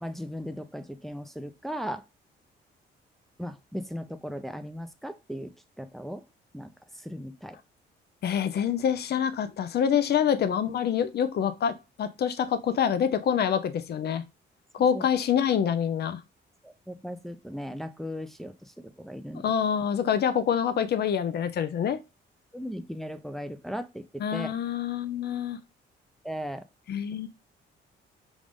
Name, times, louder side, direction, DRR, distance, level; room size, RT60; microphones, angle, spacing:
voice 1, 0.0-2.0 3.4-6.2 6.5-6.7 7.0-7.6 14.9-15.0 16.6-19.5 22.5-24.5 26.2-26.6, equal, ahead, 0.5 m, -37 dB
voice 2, 8.2-11.7 12.0-14.2 14.7-16.2 19.4-22.0 24.2-25.6 26.9-27.3, left 8 dB, 55° left, 0.6 m, -26 dB
5.0 x 2.6 x 3.5 m
cardioid pair, 90°, 20 cm